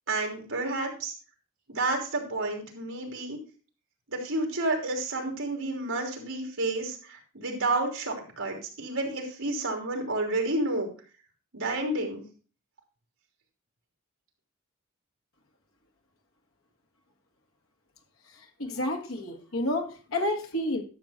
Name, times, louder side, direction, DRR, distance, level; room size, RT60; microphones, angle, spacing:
voice 1, 0.1-1.1 1.7-3.4 4.1-10.9 11.5-12.2, right 2 dB, 80° right, 3.2 m, -30 dB
voice 2, 18.6-20.8, left 1 dB, 90° left, 1.7 m, -30 dB
12.0 x 6.6 x 4.2 m
head